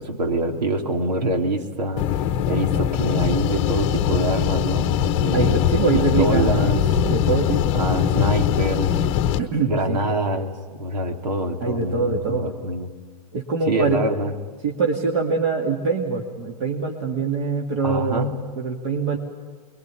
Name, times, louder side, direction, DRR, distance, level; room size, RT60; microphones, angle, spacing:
voice 1, 0.0-5.6 5.9-6.8 7.7-9.1 9.7-12.9 13.7-14.3 17.8-18.4, right 1 dB, 85° right, 4 dB, 3.4 m, -25 dB
sound 1, 2.0-9.4, left 10 dB, 25° left, 1.0 m, -21 dB
voice 2, 5.3-6.7 7.0-7.8 9.4-10.0 11.6-12.5 13.3-14.0 14.6-18.3 18.6-19.2, right 4 dB, 45° right, 0 dB, 2.7 m, -24 dB
sound 2, 6.7-9.4 9.9-10.1 11.1-11.2 11.8-11.9 12.2-12.3, right 4 dB, 70° right, 2.9 m, -34 dB
24.0 x 22.0 x 9.9 m, 1.4 s
hypercardioid pair, 155°, 21 cm